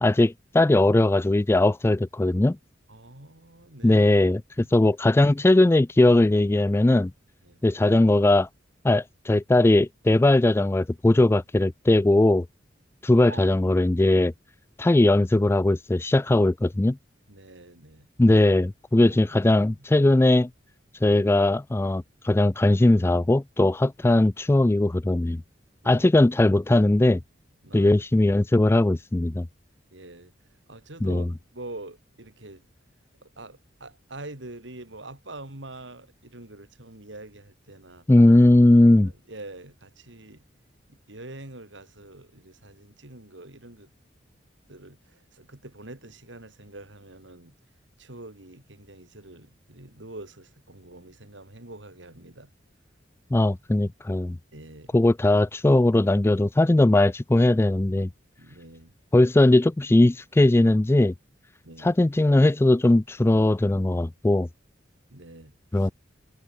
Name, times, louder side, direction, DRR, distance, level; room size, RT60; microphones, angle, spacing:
voice 1, 0.0-2.6 3.8-7.1 7.6-8.5 8.8-12.5 13.0-14.3 14.8-17.0 18.2-20.5 21.0-25.4 25.9-27.2 27.7-29.5 31.0-31.3 38.1-39.1 53.3-54.4 54.9-58.1 59.1-61.1 61.8-64.5 65.7-65.9, left 2 dB, 15° left, 0.3 m, -19 dB
voice 2, 2.9-4.0 4.6-4.9 7.4-7.6 13.1-13.6 17.3-18.1 19.0-19.7 25.8-26.0 27.6-28.3 29.9-30.3 30.7-31.3 31.5-32.6 33.2-38.1 38.7-40.4 40.9-43.9 44.7-47.5 48.0-52.5 54.5-55.0 58.4-58.9 61.6-61.9 65.1-65.9, right 2 dB, 75° right, 3.7 m, -45 dB
head